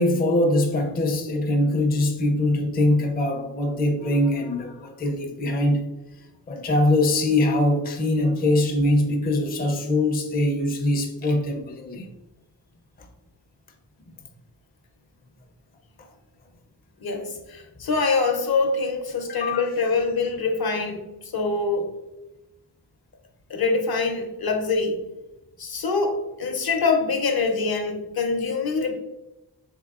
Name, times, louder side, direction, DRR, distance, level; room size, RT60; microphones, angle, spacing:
voice 1, 0.0-5.8 6.5-12.1 13.0-13.1 19.3-19.6, left 1 dB, 25° left, 0.4 m, -22 dB
voice 2, 17.0-21.9 23.5-25.0 25.6-29.0, left 4 dB, 60° left, 0.6 m, -24 dB
3.6 x 3.4 x 2.3 m
wide cardioid pair, 90°, 41 cm